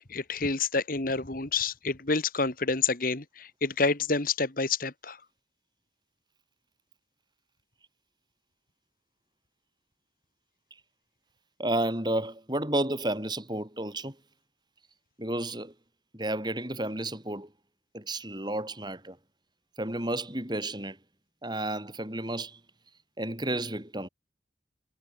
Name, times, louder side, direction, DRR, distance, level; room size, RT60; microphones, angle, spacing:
voice 1, 0.0-5.2, left 4 dB, 50° left, 2.0 m, -28 dB
voice 2, 11.6-14.2 15.2-15.7 16.1-17.5 17.9-19.2 19.8-21.0 21.4-22.6 23.2-24.1, right 1 dB, 25° right, 6.8 m, -31 dB
head